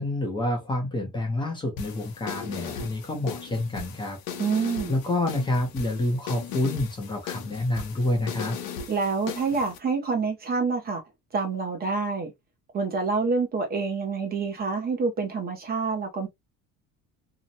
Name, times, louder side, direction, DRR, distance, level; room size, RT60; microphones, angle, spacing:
voice 1, 0.0-4.2 4.9-8.6, left 2 dB, 15° left, 0.5 m, -28 dB
sound 1, 1.8-9.8, left 6 dB, 75° left, 0.7 m, -38 dB
voice 2, 4.4-4.9 8.9-11.0 11.3-12.3 12.7-16.3, right 4 dB, 30° right, 0.5 m, -27 dB
2.8 x 2.1 x 2.5 m
cardioid pair, 175°, 34 cm